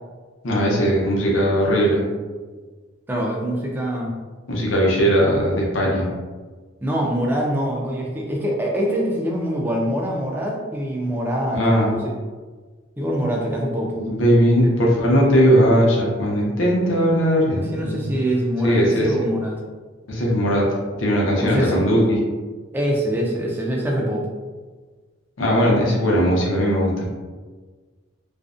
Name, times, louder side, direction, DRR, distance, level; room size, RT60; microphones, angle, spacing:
voice 1, 0.4-2.0 4.5-6.1 11.5-11.9 13.9-18.1 18.6-19.1 20.1-20.7 21.0-22.2 25.4-27.1, equal, 75° left, -3 dB, 0.7 m, -18 dB
voice 2, 3.1-4.1 6.8-12.1 13.0-14.0 17.6-19.6 21.4-21.9 22.7-24.3, equal, 10° right, -2 dB, 0.3 m, -24 dB
2.5 x 2.1 x 2.4 m, 1.4 s
head